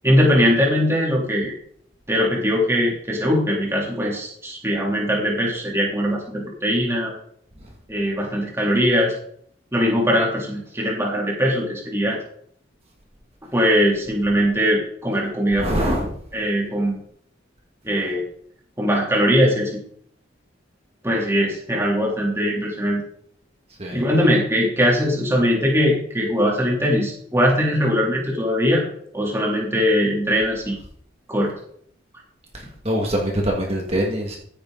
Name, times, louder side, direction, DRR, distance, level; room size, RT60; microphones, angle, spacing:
voice 1, 0.0-1.5 2.1-7.1 7.9-9.1 9.7-12.2 13.5-15.7 16.3-17.0 17.8-18.2 18.8-19.7 21.0-23.0 23.9-28.8 29.1-30.7 31.3-31.5, equal, 15° right, -3 dB, 3.5 m, -20 dB
voice 2, 15.6-16.2 23.8-24.0 32.5-34.4, equal, 35° right, -1 dB, 2.2 m, -24 dB
15.5 x 9.7 x 4.1 m, 0.63 s
head